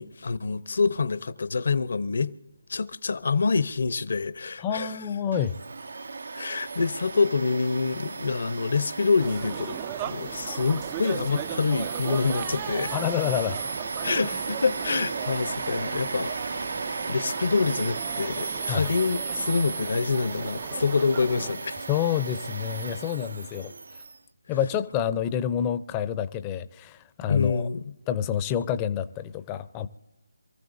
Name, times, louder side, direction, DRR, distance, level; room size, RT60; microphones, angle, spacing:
voice 1, 0.0-2.3 2.7-5.0 6.3-9.8 10.1-12.9 14.0-16.3 17.1-21.8 27.3-27.8, left 4 dB, 60° left, 0.9 m, -26 dB
voice 2, 4.6-5.6 12.9-13.7 18.7-18.9 21.9-23.7 24.5-27.7 28.1-29.9, left 9 dB, 15° left, 0.6 m, -28 dB
Domestic sounds home sounds, 5.3-24.2, right 4 dB, 65° right, 0.6 m, -35 dB
sound 1, 9.2-21.5, right 11 dB, 20° right, 0.4 m, -38 dB
27.0 x 15.0 x 2.7 m
figure-of-eight pair, 160°, 0 cm